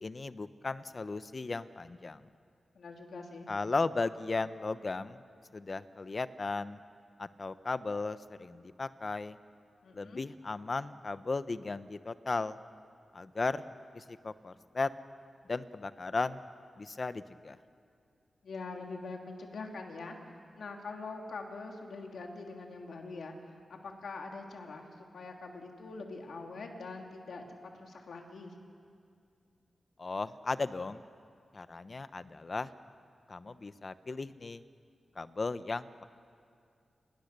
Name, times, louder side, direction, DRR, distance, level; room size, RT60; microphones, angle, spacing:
voice 1, 0.0-2.2 3.5-5.2 5.5-6.8 7.2-9.4 9.9-12.6 13.1-13.6 13.9-14.9 15.5-16.4 16.8-17.6 30.0-31.0 31.5-32.7 33.3-34.6 35.2-36.0, left 3 dB, 45° left, 13 dB, 0.9 m, -36 dB
voice 2, 2.7-3.5 9.8-10.2 18.4-20.2 20.6-28.5, left 3 dB, 80° left, 2 dB, 2.9 m, -44 dB
29.0 x 20.5 x 6.8 m, 2.3 s
cardioid pair, 75°, 0 cm